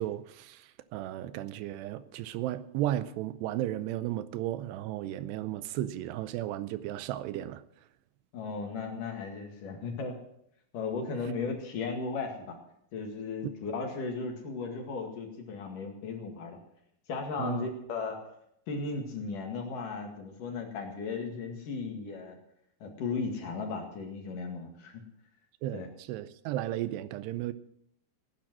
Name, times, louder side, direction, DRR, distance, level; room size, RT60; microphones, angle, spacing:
voice 1, 0.0-7.6 13.4-13.5 17.4-17.7 25.6-27.5, right 13 dB, 85° right, 2.8 m, -34 dB
voice 2, 8.3-10.2 10.7-12.6 12.9-16.6 17.1-18.2 18.7-22.4 22.8-25.0 25.7-25.9, left 4 dB, 55° left, 3.3 m, -36 dB
17.0 x 10.5 x 6.2 m
omnidirectional pair, 4.8 m